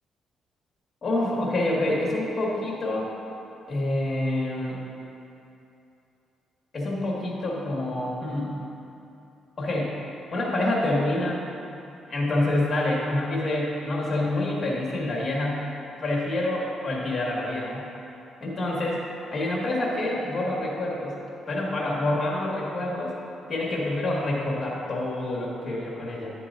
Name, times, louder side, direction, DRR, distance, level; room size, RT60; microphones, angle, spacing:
voice 1, 1.0-3.1 3.7-4.8 6.7-8.6 9.6-10.0 10.3-11.4 12.1-15.7 16.0-17.8 18.4-19.0 19.3-21.2 21.5-23.2 23.5-26.3, left 1 dB, 35° left, -4 dB, 2.0 m, -27 dB
11.0 x 7.5 x 2.7 m, 2.8 s
cardioid pair, 90°, 0 cm